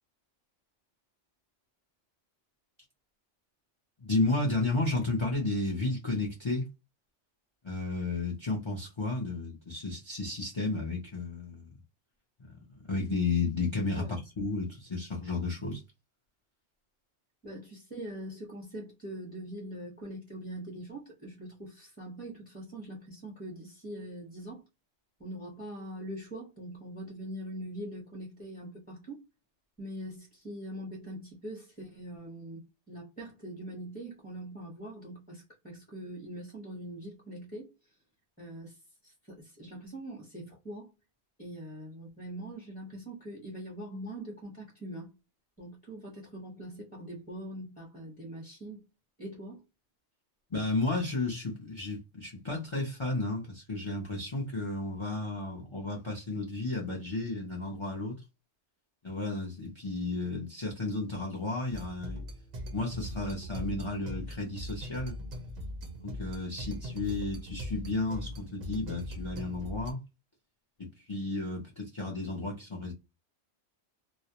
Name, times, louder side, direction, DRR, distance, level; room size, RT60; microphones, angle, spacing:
voice 1, 4.0-6.7 7.6-11.7 12.4-12.5 12.9-15.8 50.5-58.2 59.0-62.2 62.7-65.1 66.0-70.0 70.8-72.9, left 3 dB, 40° left, 0.4 m, -33 dB
voice 2, 13.9-14.2 17.4-24.6 25.2-29.2 29.8-37.7 38.4-38.8 39.0-40.9 41.4-45.2 45.6-48.8 49.2-49.6, right 1 dB, 10° left, 0.7 m, -43 dB
sound 1, 61.7-69.9, equal, 50° right, 0.5 m, -40 dB
2.3 x 2.0 x 2.8 m
omnidirectional pair, 1.2 m